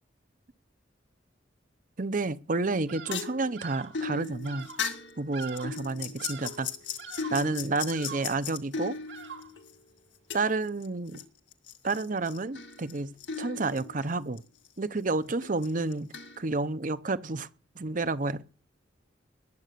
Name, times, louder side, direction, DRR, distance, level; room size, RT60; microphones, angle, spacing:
voice 1, 2.0-4.7 5.2-6.7 7.3-9.0 10.3-11.2 11.8-14.4 14.8-17.5 17.8-18.4, right 3 dB, 45° right, 0.8 m, -30 dB
sound 1, 2.7-9.7 10.3-11.2 11.5-14.4 14.6-14.7 15.4-16.4, left 6 dB, 80° left, 2.1 m, -37 dB
Bird vocalization bird call bird song, 2.9-3.3 3.6-4.0 4.4-4.9 5.3-5.9 6.2-6.7 7.0-7.5 7.9-8.4 9.1-9.6, right 6 dB, 70° right, 2.3 m, -44 dB
20.5 x 8.7 x 6.8 m
head